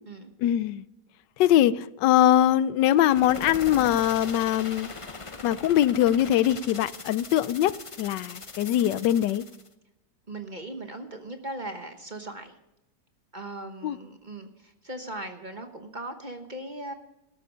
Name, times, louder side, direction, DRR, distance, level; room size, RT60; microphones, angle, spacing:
voice 1, 0.4-0.8 1.4-4.9 5.4-9.4 13.8-14.0, left 12 dB, 80° left, 1.3 m, -22 dB
sound 1, 2.8-9.7, left 4 dB, 35° left, 0.5 m, -41 dB
voice 2, 10.3-12.5 13.3-16.9, right 1 dB, 30° right, 1.0 m, -38 dB
12.5 x 12.5 x 5.1 m
omnidirectional pair, 1.9 m